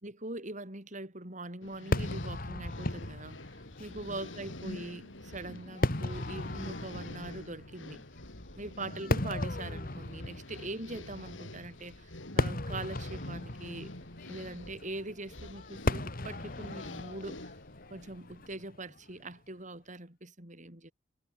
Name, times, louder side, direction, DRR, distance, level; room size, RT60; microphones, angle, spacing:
voice 1, 0.0-8.1 8.6-13.9 14.3-17.5 17.9-20.9, right 2 dB, 40° right, 5.1 m, -42 dB
sound 1, 1.6-18.6, left 1 dB, 85° left, 5.2 m, -47 dB
Fireworks, 1.9-19.2, left 2 dB, 50° left, 2.1 m, -37 dB
head